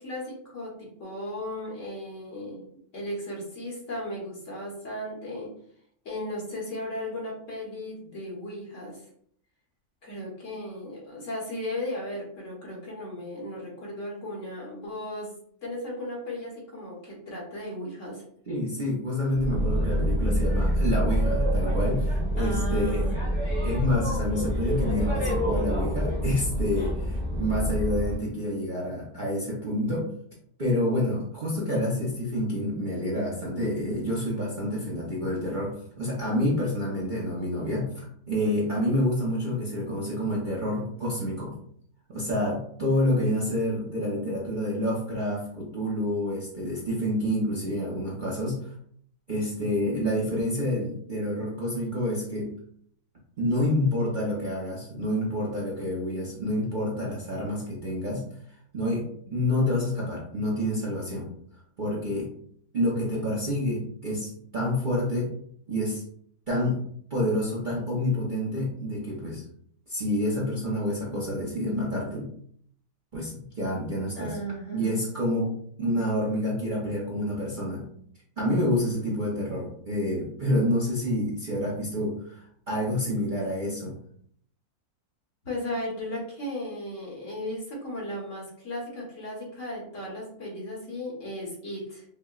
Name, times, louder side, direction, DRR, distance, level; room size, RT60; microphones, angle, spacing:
voice 1, 0.0-2.6 2.9-5.5 6.0-9.0 10.0-15.3 15.6-18.2 22.4-23.2 74.1-75.0 85.4-92.0, left 1 dB, 55° left, -4 dB, 1.5 m, -36 dB
voice 2, 18.5-23.1 23.6-30.1 30.6-41.5 42.1-48.7 49.3-52.5 53.4-58.2 58.7-61.3 61.8-62.3 62.7-65.3 65.7-66.0 66.5-66.8 67.1-69.4 69.9-72.3 73.1-74.4 74.7-77.9 78.4-84.0, left 1 dB, 40° right, -5 dB, 0.8 m, -28 dB
Boat Water vehicle, 19.3-28.2, equal, 10° left, 0.9 m, -26 dB
5.6 x 2.1 x 2.4 m, 0.63 s
omnidirectional pair, 1.6 m